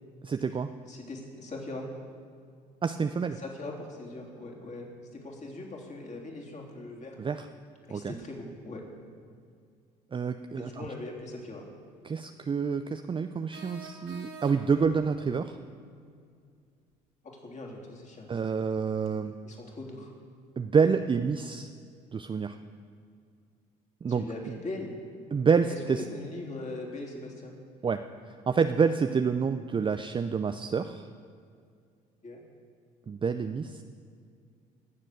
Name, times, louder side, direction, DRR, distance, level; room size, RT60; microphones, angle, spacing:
voice 1, 0.2-0.7 2.8-3.4 7.2-7.4 7.9-8.1 10.1-10.9 12.0-15.6 18.3-19.3 20.6-21.7 22.1-22.6 24.0-24.5 25.3-26.0 27.8-28.0 28.5-31.1 33.1-33.8, right 5 dB, 25° right, 8 dB, 0.5 m, -28 dB
voice 2, 0.9-1.9 3.4-7.2 7.9-8.8 10.6-11.6 17.2-18.3 19.4-20.2 24.1-25.0 25.7-25.8 26.1-27.5 32.2-32.4, left 2 dB, 35° left, 0 dB, 3.3 m, -40 dB
sound 1, 13.5-14.9, right 4 dB, 60° right, 2.7 m, -46 dB
21.0 x 7.5 x 6.6 m, 2.2 s
hypercardioid pair, 55°, 20 cm